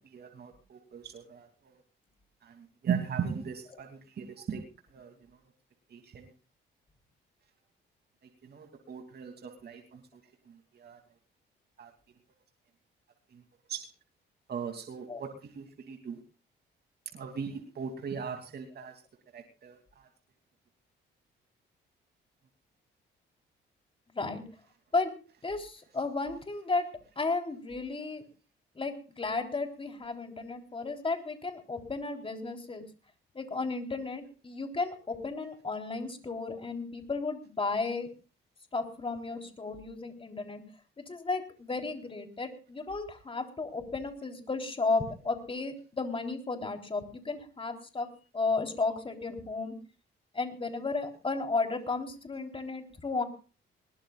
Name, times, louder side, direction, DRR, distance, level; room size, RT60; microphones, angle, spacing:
voice 1, 0.1-1.5 2.8-3.9 4.2-4.6 4.9-5.1 5.9-6.2 8.5-10.0 10.8-11.0 11.8-11.9 13.7-13.8 14.5-15.3 15.5-16.2 17.1-18.9 19.3-19.8, right 7 dB, 55° right, 4 dB, 2.9 m, -37 dB
voice 2, 24.1-24.4 24.9-25.1 25.4-26.9 27.2-28.2 28.8-32.8 33.3-38.1 38.7-40.6 41.1-48.1 48.3-49.8 50.3-53.2, left 3 dB, 25° left, 5 dB, 3.9 m, -33 dB
21.5 x 19.5 x 2.5 m, 0.35 s
cardioid pair, 90°, 20 cm